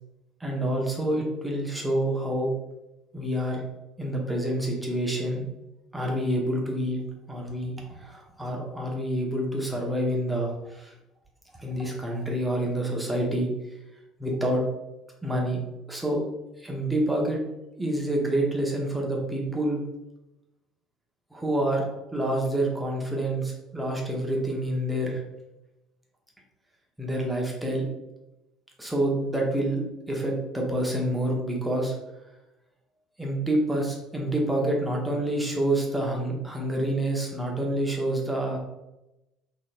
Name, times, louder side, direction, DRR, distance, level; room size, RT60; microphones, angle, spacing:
voice 1, 0.4-2.5 3.1-3.6 4.0-5.5 5.9-7.0 7.3-7.7 8.0-10.9 11.6-13.5 14.2-14.6 15.2-15.6 15.9-16.2 16.6-17.4 17.8-19.8 21.3-25.2 27.0-27.8 28.8-29.8 30.1-31.9 33.2-38.6, right 1 dB, 5° right, -1 dB, 1.0 m, -27 dB
3.9 x 3.1 x 2.5 m, 0.97 s
figure-of-eight pair, 60°, 0 cm